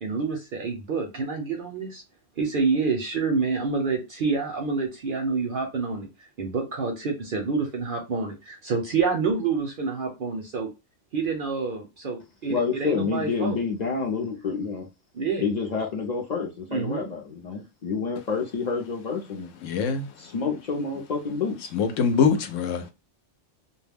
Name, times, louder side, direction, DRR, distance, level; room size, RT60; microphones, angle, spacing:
voice 1, 0.0-2.0 2.4-6.1 6.4-10.7 11.1-13.6 15.1-15.5 16.7-17.1, right 4 dB, 60° right, 0.6 m, -27 dB
voice 2, 12.5-14.9 15.4-19.5 20.2-21.7, left 5 dB, 50° left, 0.6 m, -28 dB
voice 3, 19.6-20.0 21.7-22.9, left 6 dB, 80° left, 0.9 m, -23 dB
2.2 x 2.2 x 3.3 m
omnidirectional pair, 1.3 m